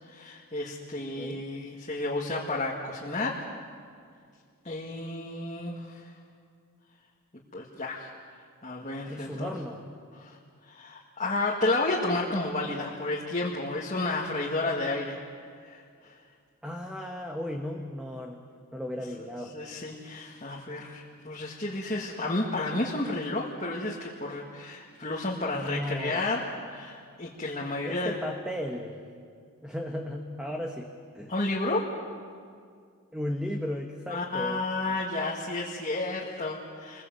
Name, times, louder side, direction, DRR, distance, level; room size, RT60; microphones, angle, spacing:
voice 1, 0.1-3.4 4.6-6.1 7.5-8.1 8.6-9.5 10.2-10.4 10.7-15.2 15.6-16.2 19.5-28.2 31.3-31.9 34.1-37.0, left 2 dB, 30° left, -3 dB, 2.0 m, -31 dB
voice 2, 9.1-9.8 16.6-18.4 18.7-19.6 25.5-26.2 27.8-29.0 29.6-31.3 33.1-34.6, left 1 dB, 5° right, 2 dB, 1.2 m, -35 dB
27.5 x 21.5 x 7.9 m, 2.2 s
head